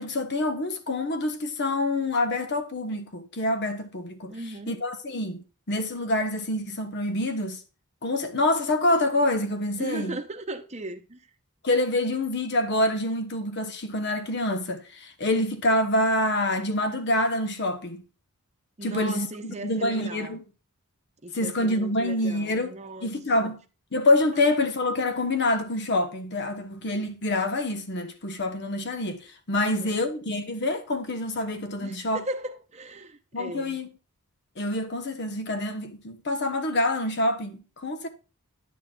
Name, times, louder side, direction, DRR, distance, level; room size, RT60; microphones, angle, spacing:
voice 1, 0.0-4.3 4.7-7.6 8.0-10.2 11.6-18.0 18.8-20.4 21.3-22.7 23.0-23.6 23.9-32.2 33.3-33.9 34.6-38.1, left 1 dB, 50° left, 1.1 m, -26 dB
voice 2, 4.3-4.8 9.8-11.3 18.8-20.3 21.2-23.1 23.4-23.6 24.3-24.4 29.6-30.1 31.8-33.8, right 2 dB, 30° right, 0.9 m, -37 dB
10.5 x 6.6 x 2.4 m
head